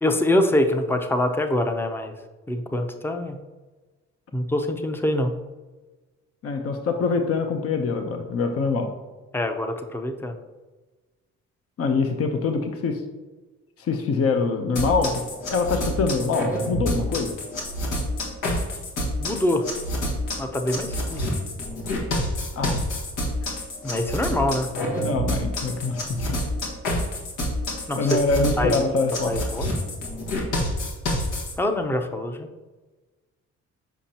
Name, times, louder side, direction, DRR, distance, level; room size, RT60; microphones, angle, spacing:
voice 1, 0.0-2.1 2.5-3.4 4.3-5.3 9.3-10.4 19.2-19.6 20.4-21.3 23.8-24.7 27.9-28.2 28.6-28.8 29.2-29.7 31.6-32.5, left 1 dB, 5° left, 6 dB, 0.6 m, -24 dB
voice 2, 6.4-8.9 11.8-13.0 13.8-17.4 22.6-22.9 25.0-26.4 28.0-29.3, left 4 dB, 50° left, 5 dB, 0.8 m, -24 dB
sound 1, 14.8-31.5, left 1 dB, 90° left, 1.6 m, -28 dB
7.1 x 5.1 x 2.8 m, 1.2 s
cardioid pair, 90°, 30 cm